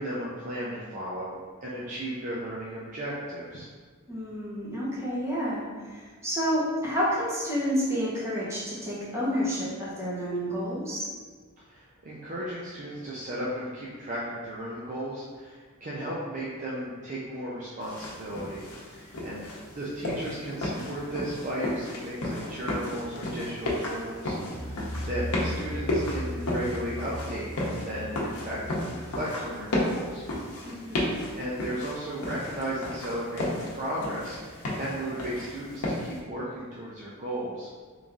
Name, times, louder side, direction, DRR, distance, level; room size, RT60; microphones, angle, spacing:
voice 1, 0.0-3.7 11.7-28.6 28.9-30.2 30.8-31.0 31.3-37.7, right 1 dB, 35° right, -7 dB, 0.5 m, -35 dB
voice 2, 4.1-11.1 20.7-20.9 30.6-31.2, equal, 15° right, -8 dB, 1.0 m, -30 dB
sound 1, 17.8-36.2, left 1 dB, 90° left, 0.7 m, -33 dB
sound 2, 24.3-29.2, equal, 20° left, 0.9 m, -37 dB
3.1 x 2.6 x 3.5 m, 1.5 s
head